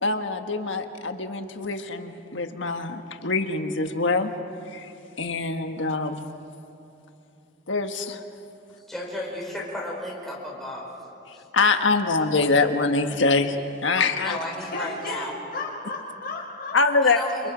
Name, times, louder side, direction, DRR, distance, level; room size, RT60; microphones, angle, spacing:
voice 1, 0.0-4.3 4.7-4.9 5.2-6.2 7.7-8.2 11.3-13.6 13.8-14.4 16.7-17.5, left 3 dB, 80° left, 6 dB, 1.5 m, -24 dB
voice 2, 8.9-10.9 11.3-11.4 14.2-15.3 17.0-17.5, left 1 dB, ahead, -4 dB, 4.8 m, -33 dB
voice 3, 14.6-15.2 15.5-17.0, left 3 dB, 50° left, -2 dB, 5.7 m, -34 dB
28.5 x 28.0 x 5.1 m, 2.8 s
head